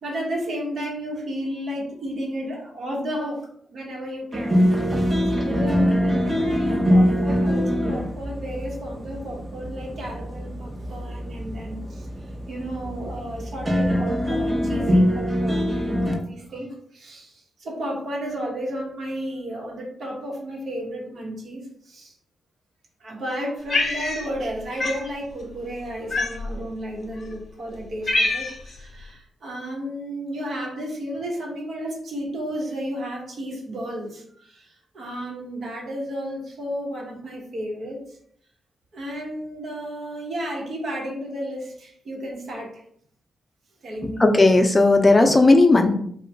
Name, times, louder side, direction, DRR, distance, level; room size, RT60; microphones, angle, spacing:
voice 1, 0.0-4.7 5.3-12.1 12.5-22.1 23.0-38.2 38.9-42.8 43.8-44.2, equal, 70° right, -1 dB, 1.1 m, -33 dB
sound 1, 4.3-16.1, equal, 30° right, 0.8 m, -23 dB
Cat, 23.7-24.5 24.8-25.0 26.1-26.6 27.3-27.4 27.7-28.8, left 2 dB, 55° left, 0.8 m, -25 dB
voice 2, 44.2-45.9, left 2 dB, 25° left, 5 dB, 0.6 m, -15 dB
2.8 x 2.3 x 3.4 m, 0.64 s
supercardioid pair, 45°, 0 cm